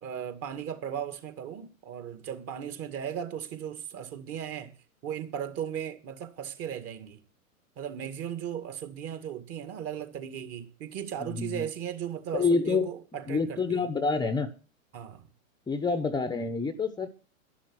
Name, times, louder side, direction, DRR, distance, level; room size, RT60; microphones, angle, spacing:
voice 1, 0.0-4.7 5.0-7.2 7.8-13.8 14.9-15.2, right 9 dB, 35° right, 2.1 m, -37 dB
voice 2, 11.2-11.6 12.3-12.9 13.3-14.5 15.7-17.1, left 4 dB, 10° left, 0.9 m, -27 dB
11.5 x 11.5 x 6.3 m
hypercardioid pair, 110°, 43 cm